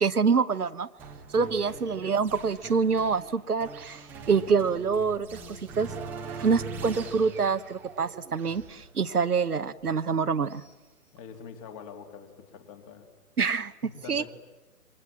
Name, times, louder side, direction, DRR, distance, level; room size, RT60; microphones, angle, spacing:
voice 1, 0.0-0.9 1.3-5.9 6.3-10.6 13.4-13.7 14.1-14.3, right 5 dB, 70° right, 12 dB, 1.2 m, -26 dB
sound 1, 1.0-10.7, right 4 dB, 5° right, 0.9 m, -43 dB
voice 2, 11.1-13.1 13.8-14.3, left 6 dB, 20° left, 6 dB, 2.9 m, -44 dB
27.5 x 24.5 x 7.5 m, 1.2 s
figure-of-eight pair, 140°, 47 cm